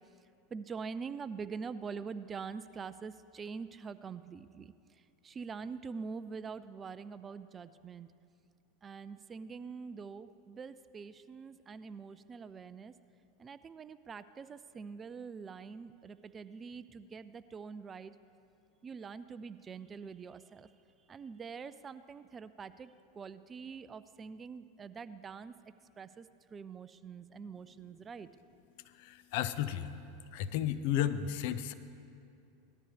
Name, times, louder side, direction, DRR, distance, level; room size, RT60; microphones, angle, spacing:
voice 1, 0.5-4.7 5.2-8.1 8.8-12.9 13.4-18.1 18.8-20.7 21.1-25.6 26.0-28.3, right 5 dB, 25° right, 14 dB, 0.4 m, -44 dB
voice 2, 29.0-29.9 30.3-31.7, left 10 dB, 60° left, 13 dB, 0.6 m, -33 dB
18.5 x 13.0 x 3.4 m, 2.6 s
hypercardioid pair, 105°, 0 cm